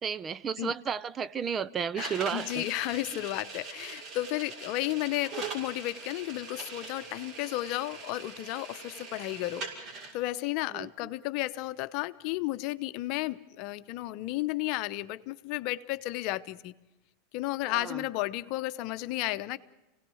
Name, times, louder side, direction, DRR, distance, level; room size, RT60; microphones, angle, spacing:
voice 1, 0.0-2.7 10.7-11.1 17.6-18.1, right 7 dB, 30° right, 0.6 m, -33 dB
voice 2, 1.9-9.7 10.1-16.7 17.3-19.6, left 17 dB, 55° left, 0.9 m, -33 dB
sound 1, 2.0-10.1, right 4 dB, 45° right, 6.2 m, -42 dB
26.5 x 18.0 x 6.4 m
hypercardioid pair, 110°, 0 cm